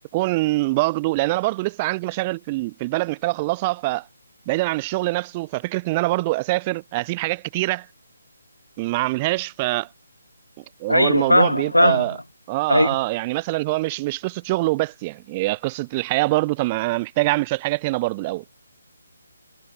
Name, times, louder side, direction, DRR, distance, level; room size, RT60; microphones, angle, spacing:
voice 1, 0.1-4.1 4.5-7.9 8.8-9.9 10.8-12.2 12.5-18.5, right 21 dB, 20° right, 2.0 m, -24 dB
voice 2, 10.9-12.0 12.7-12.9, left 1 dB, 85° left, 1.9 m, -17 dB
figure-of-eight pair, 145°, 0 cm